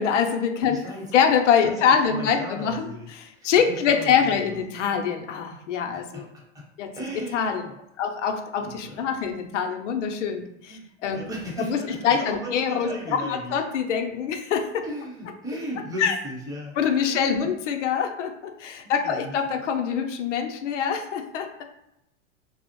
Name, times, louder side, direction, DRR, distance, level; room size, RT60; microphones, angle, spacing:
voice 1, 0.0-0.8 1.1-6.3 6.8-6.9 7.3-7.7 8.0-11.3 11.7-14.8 16.0-16.2 16.8-21.6, left 7 dB, 80° left, 5 dB, 0.5 m, -24 dB
voice 2, 0.7-1.0 1.6-1.7 2.1-3.1 3.4-4.4 4.7-4.8 5.9-6.6 6.9-7.7 8.8-9.0 10.7-10.9 11.1-13.6 14.8-16.7 17.1-17.5 18.8-19.6, equal, 10° right, -4 dB, 0.8 m, -36 dB
2.4 x 2.0 x 2.9 m, 0.83 s
hypercardioid pair, 100°, 36 cm